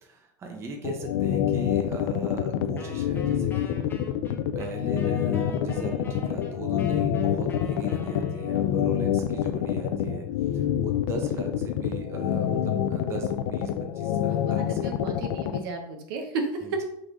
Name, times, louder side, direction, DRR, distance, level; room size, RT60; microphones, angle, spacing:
voice 1, 0.0-3.9 4.5-10.3 10.5-14.9 16.6-16.8, right 3 dB, 25° right, 2 dB, 0.7 m, -39 dB
sound 1, 0.8-15.6, left 10 dB, 75° left, 0.4 m, -26 dB
Wind instrument woodwind instrument, 2.8-8.8, left 3 dB, 20° left, 0.8 m, -45 dB
voice 2, 14.3-16.8, right 3 dB, 80° right, 3 dB, 1.0 m, -33 dB
3.8 x 2.6 x 4.6 m, 0.79 s
supercardioid pair, 145°, 12 cm